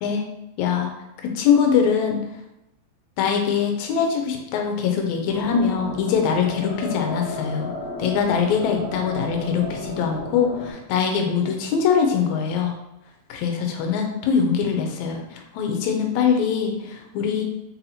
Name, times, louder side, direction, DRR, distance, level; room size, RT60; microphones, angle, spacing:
voice 1, 0.6-0.9 1.4-2.2 3.2-7.7 8.0-12.7 13.3-17.4, left 6 dB, 80° left, 3 dB, 1.9 m, -22 dB
sound 1, 5.3-10.7, left 1 dB, 65° left, 1.1 m, -34 dB
4.1 x 4.1 x 2.8 m, 0.91 s
omnidirectional pair, 3.4 m